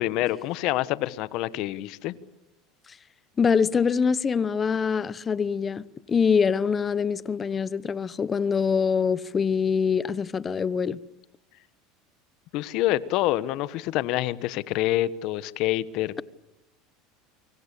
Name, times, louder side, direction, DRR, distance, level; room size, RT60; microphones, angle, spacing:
voice 1, 0.0-2.1 12.5-16.1, left 15 dB, 60° left, 1.2 m, -26 dB
voice 2, 3.4-11.0, left 6 dB, 25° left, 0.9 m, -24 dB
25.0 x 24.0 x 8.4 m
supercardioid pair, 110°, 0 cm